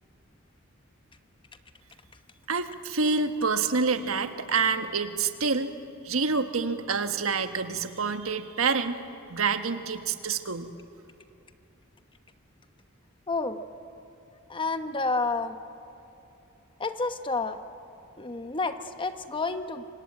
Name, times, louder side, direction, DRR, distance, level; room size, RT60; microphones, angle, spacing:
voice 1, 2.5-5.7 6.0-9.0 9.3-10.7, right 4 dB, 90° right, 8 dB, 1.4 m, -27 dB
voice 2, 13.3-13.6 14.5-15.6 16.8-17.6 18.2-19.8, left 3 dB, 25° left, 9 dB, 1.1 m, -30 dB
27.0 x 25.0 x 9.0 m, 2.7 s
head